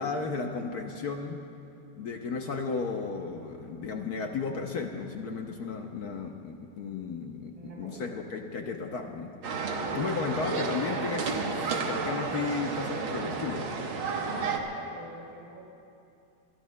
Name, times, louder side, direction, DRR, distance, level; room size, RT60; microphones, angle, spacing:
voice 1, 0.0-1.4 1.9-13.7, left 4 dB, 60° left, 3 dB, 1.0 m, -34 dB
voice 2, 7.5-8.2 14.2-15.6, right 2 dB, 55° right, -6 dB, 4.8 m, -47 dB
sound 1, 9.4-14.6, right 4 dB, 75° right, 2.0 m, -31 dB
25.5 x 21.5 x 2.2 m, 2.7 s
omnidirectional pair, 2.3 m